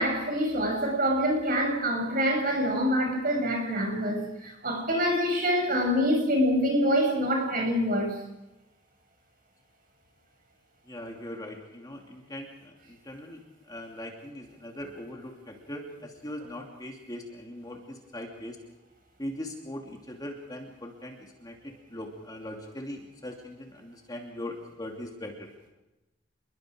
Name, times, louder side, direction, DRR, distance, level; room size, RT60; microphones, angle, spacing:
voice 1, 0.0-8.1, equal, 45° right, 7.1 m, -26 dB
voice 2, 10.9-13.4 13.7-18.6 19.2-25.5, left 1 dB, 20° left, 2.8 m, -40 dB
28.5 x 22.0 x 5.1 m
head